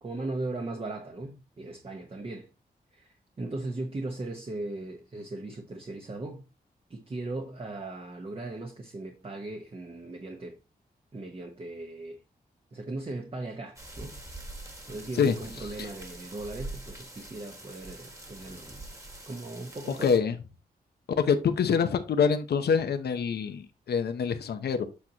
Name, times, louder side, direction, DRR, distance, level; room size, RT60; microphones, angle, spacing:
voice 1, 0.0-2.5 2.9-6.4 6.9-10.6 11.1-12.2 12.7-14.2 14.9-18.8 19.3-20.1, right 2 dB, 35° right, 1.1 m, -38 dB
sound 1, 13.8-20.2, right 2 dB, 20° right, 1.7 m, -44 dB
voice 2, 15.1-15.9 19.9-20.4 21.2-24.9, left 6 dB, 80° left, 0.8 m, -26 dB
8.4 x 6.0 x 2.9 m
wide cardioid pair, 95°, 17 cm